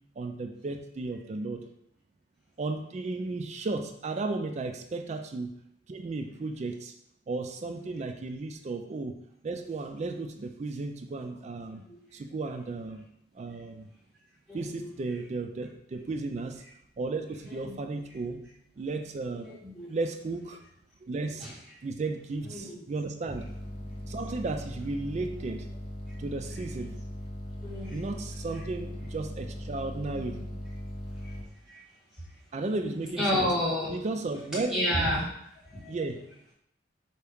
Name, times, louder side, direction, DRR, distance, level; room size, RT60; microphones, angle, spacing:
voice 1, 0.2-1.7 2.6-5.6 5.9-6.9 7.3-11.8 12.1-13.1 13.3-13.9 14.5-16.6 17.0-18.4 18.8-19.5 19.9-20.6 21.0-21.5 21.8-23.5 24.0-25.7 26.2-26.9 27.9-30.4 32.5-33.5 33.9-34.8 35.9-36.3, right 3 dB, 35° right, 6 dB, 0.3 m, -34 dB
voice 2, 14.5-14.9 17.5-17.8 19.4-19.9 21.4-21.5 22.4-22.8 27.6-28.0 30.0-30.4 31.2-31.3 31.7-31.8 32.8-33.9 34.7-35.2 35.6-36.0, equal, 5° right, -9 dB, 1.7 m, -31 dB
sound 1, 23.3-31.5, equal, 25° left, 0.6 m, -39 dB
4.5 x 2.8 x 3.5 m, 0.73 s
head